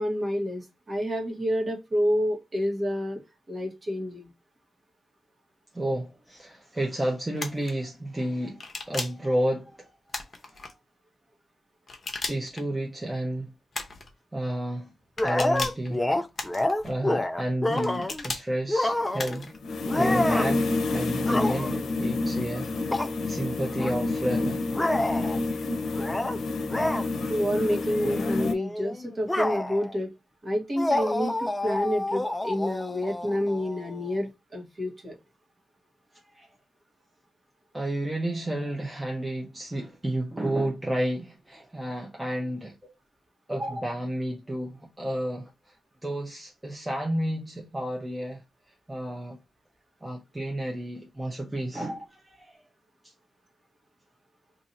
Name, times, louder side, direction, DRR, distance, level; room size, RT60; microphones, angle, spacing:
voice 1, 0.0-3.2 3.5-4.3 27.3-30.1 30.4-35.2 43.5-43.9 51.8-52.0, equal, 35° right, 1.3 m, -29 dB
voice 2, 5.7-9.9 10.4-10.7 12.3-13.5 14.3-14.9 15.2-16.2 16.8-19.5 19.9-22.7 23.3-24.6 36.3-36.5 37.7-42.7 43.5-45.7 46.0-48.4 48.9-49.4 50.0-52.0 52.4-52.6 53.0-53.1, right 1 dB, 15° right, 0.7 m, -31 dB
sound 1, 7.4-7.7 8.6-9.3 10.1-10.7 11.9-12.6 13.7-14.1 15.2-15.9 16.4-16.9 17.8-18.5 19.2-19.6, left 3 dB, 40° left, 0.8 m, -35 dB
sound 2, 15.2-18.2 18.7-19.4 19.9-20.6 21.2-21.9 22.9-23.1 23.8-23.9 24.7-25.4 25.9-26.4 26.7-27.1 27.6-27.8 28.1-29.9 30.8-34.1, left 1 dB, 15° left, 0.3 m, -28 dB
sound 3, 18.9-28.5, left 3 dB, 80° left, 0.6 m, -28 dB
2.7 x 2.6 x 4.1 m
cardioid pair, 100°, 0 cm